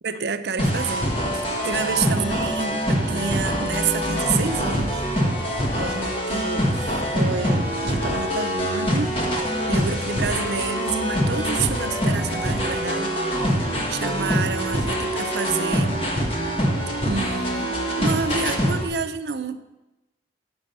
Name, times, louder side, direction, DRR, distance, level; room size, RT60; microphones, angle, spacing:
voice 1, 0.0-5.0 5.8-9.4 9.7-13.5 13.9-16.0 17.0-19.6, right 5 dB, 65° right, 9 dB, 0.6 m, -29 dB
sound 1, 0.6-18.9, equal, 35° left, 1.4 m, -24 dB
8.9 x 6.2 x 5.4 m, 1.0 s
head